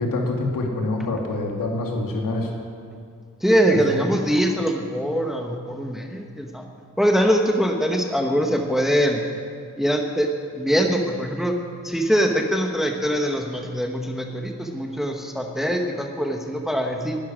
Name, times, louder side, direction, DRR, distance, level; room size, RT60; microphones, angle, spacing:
voice 1, 0.0-2.5 3.9-4.0, left 2 dB, 80° left, 0 dB, 2.8 m, -26 dB
voice 2, 3.4-6.6 7.0-9.3 9.8-11.5 11.8-17.2, equal, ahead, 2 dB, 1.2 m, -23 dB
12.5 x 11.5 x 9.8 m, 2.3 s
wide cardioid pair, 175°, 33 cm